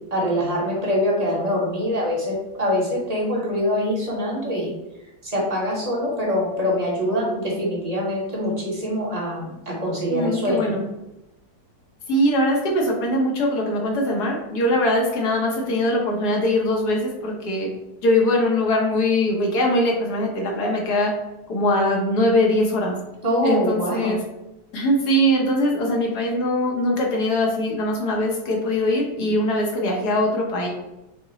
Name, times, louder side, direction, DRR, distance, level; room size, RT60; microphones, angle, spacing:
voice 1, 0.1-4.7 5.2-10.7 23.2-24.2, equal, 25° right, -3 dB, 1.2 m, -24 dB
voice 2, 10.1-10.9 12.1-17.7 18.0-21.1 21.5-22.9 23.4-24.2 24.7-30.7, left 1 dB, 75° left, 0 dB, 1.6 m, -21 dB
6.0 x 2.2 x 4.0 m, 0.94 s
omnidirectional pair, 1.7 m